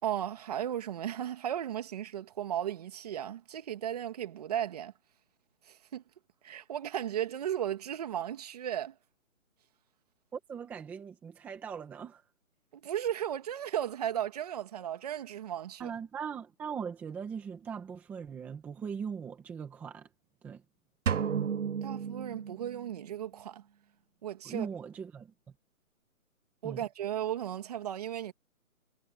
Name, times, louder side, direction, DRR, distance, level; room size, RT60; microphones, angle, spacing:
voice 1, 0.0-4.9 5.7-6.0 6.4-8.9 12.7-15.9 21.8-23.6 24.2-24.7 26.6-28.3, right 10 dB, 25° right, 2.4 m, -35 dB
voice 2, 10.3-12.2 15.8-20.1 20.4-20.6 24.4-25.3 26.6-26.8, right 6 dB, 5° right, 1.6 m, -40 dB
sound 1, 21.1-23.1, right 7 dB, 60° right, 0.9 m, -33 dB
hypercardioid pair, 170°, 43 cm